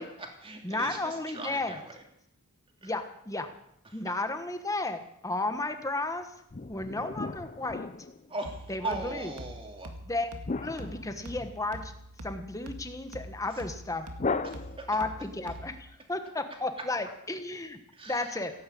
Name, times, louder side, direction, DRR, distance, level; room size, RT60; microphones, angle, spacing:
voice 1, 0.0-2.0 2.8-3.0 3.8-4.0 8.3-9.9 13.4-13.6 14.4-14.9 15.5-15.6 16.8-16.9 17.9-18.5, right 2 dB, 25° right, 2 dB, 2.8 m, -40 dB
voice 2, 0.6-1.8 2.8-3.5 3.9-6.3 6.7-7.9 8.7-9.3 10.1-11.9 12.2-14.1 14.9-17.8 18.1-18.5, left 2 dB, 15° left, 7 dB, 1.3 m, -33 dB
sound 1, 6.5-8.5 10.4-11.8 14.2-15.2, left 3 dB, 30° left, 0.5 m, -36 dB
sound 2, 8.4-16.0, equal, 85° right, 2.0 m, -45 dB
16.5 x 9.7 x 8.5 m, 0.76 s
head